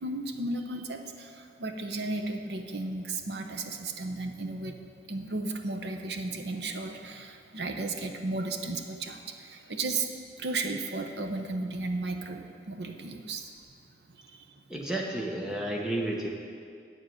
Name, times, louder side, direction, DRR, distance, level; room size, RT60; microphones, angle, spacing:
voice 1, 0.0-4.8 5.1-10.1 10.4-13.5 14.1-14.5, right 2 dB, 70° right, 5 dB, 0.9 m, -34 dB
voice 2, 14.7-16.3, right 1 dB, 5° right, -2 dB, 1.1 m, -31 dB
8.7 x 7.4 x 7.8 m, 2.3 s
head